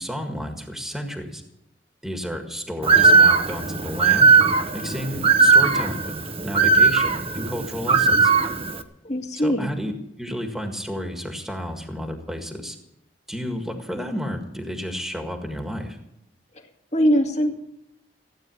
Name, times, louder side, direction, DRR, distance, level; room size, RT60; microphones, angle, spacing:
voice 1, 0.0-1.4 2.0-4.3 4.7-6.1 6.4-8.3 9.4-9.9 10.2-12.8 13.3-16.0, equal, ahead, 3 dB, 1.8 m, -31 dB
Bird, 2.8-8.8, right 4 dB, 35° right, 1.0 m, -18 dB
voice 2, 9.0-9.7 16.9-17.5, equal, 40° left, 3 dB, 2.0 m, -21 dB
16.0 x 9.2 x 9.3 m, 0.79 s
head